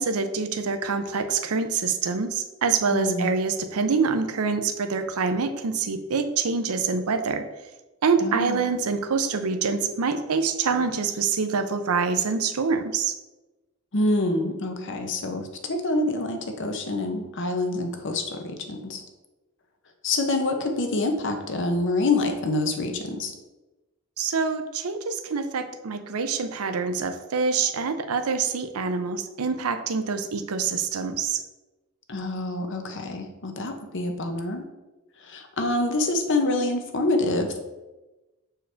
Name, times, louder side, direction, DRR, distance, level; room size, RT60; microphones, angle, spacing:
voice 1, 0.0-7.4 8.0-13.2 24.2-31.4, right 5 dB, 85° right, 9 dB, 0.6 m, -26 dB
voice 2, 2.9-3.3 8.2-8.6 13.9-19.0 20.0-23.3 32.1-34.6 35.2-37.6, left 2 dB, 60° left, 5 dB, 0.8 m, -26 dB
6.4 x 4.6 x 3.3 m, 1.1 s
head